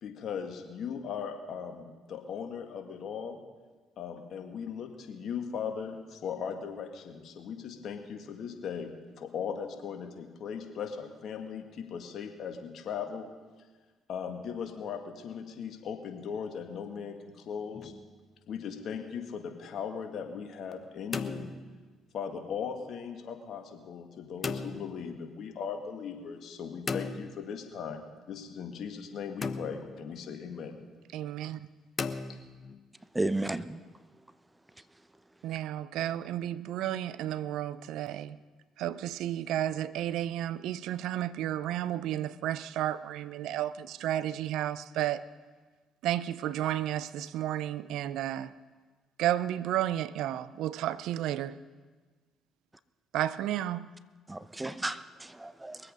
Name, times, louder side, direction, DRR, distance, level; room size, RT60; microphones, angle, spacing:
voice 1, 0.0-3.4 4.0-13.3 14.1-17.9 18.5-21.5 22.1-30.8, left 7 dB, 65° left, 1.8 m, -38 dB
sound 1, 17.7-18.3 20.8-22.1 24.4-25.0 26.9-27.8 29.4-30.1 32.0-32.9, left 4 dB, 40° left, 0.9 m, -37 dB
voice 2, 31.1-31.7 35.4-38.4 38.8-45.2 46.0-48.5 49.2-51.6 53.1-53.9, right 12 dB, 75° right, 0.5 m, -32 dB
voice 3, 33.1-33.8 54.3-55.8, right 2 dB, 15° right, 0.8 m, -33 dB
22.0 x 8.3 x 5.4 m
hypercardioid pair, 55°, 0 cm